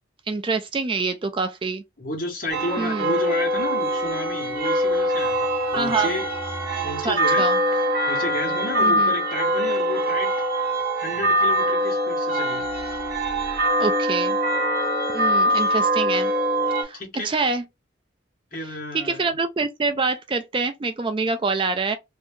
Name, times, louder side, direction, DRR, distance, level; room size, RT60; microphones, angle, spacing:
voice 1, 0.3-1.8 2.8-3.1 5.7-6.1 7.0-7.6 8.8-9.1 13.8-14.4 15.1-16.3 16.8-17.0 17.2-17.6 18.9-22.0, right 4 dB, 25° right, 0.3 m, -25 dB
voice 2, 2.0-6.3 6.8-7.8 8.1-10.3 10.9-12.6 16.9-17.5 18.5-19.4, left 1 dB, 45° left, 1.2 m, -32 dB
sound 1, 2.5-16.8, right 1 dB, 50° right, 1.1 m, -23 dB
2.7 x 2.7 x 3.4 m
head